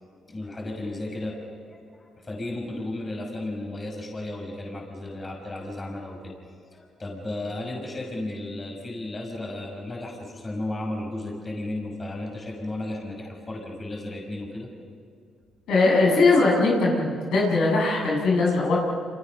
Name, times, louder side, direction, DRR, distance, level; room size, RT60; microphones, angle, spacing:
voice 1, 0.2-6.3 6.6-14.7, left 1 dB, 30° left, 0 dB, 6.3 m, -34 dB
voice 2, 15.7-18.8, left 3 dB, 80° left, -3 dB, 7.7 m, -20 dB
29.5 x 28.0 x 5.5 m, 2.2 s
cardioid pair, 90°, 0 cm